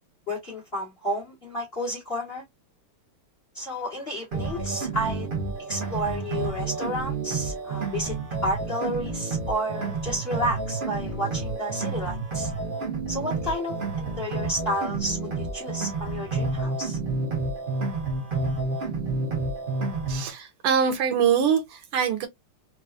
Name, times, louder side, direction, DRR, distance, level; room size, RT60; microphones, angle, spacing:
voice 1, 0.3-2.4 3.5-5.3 5.7-8.2 8.4-12.5 13.1-17.0, equal, 30° left, 1.4 m, -31 dB
sound 1, 4.3-20.3, right 3 dB, 60° right, 0.5 m, -30 dB
voice 2, 20.1-22.3, right 7 dB, 85° right, 1.7 m, -23 dB
4.0 x 2.3 x 2.4 m
omnidirectional pair, 2.4 m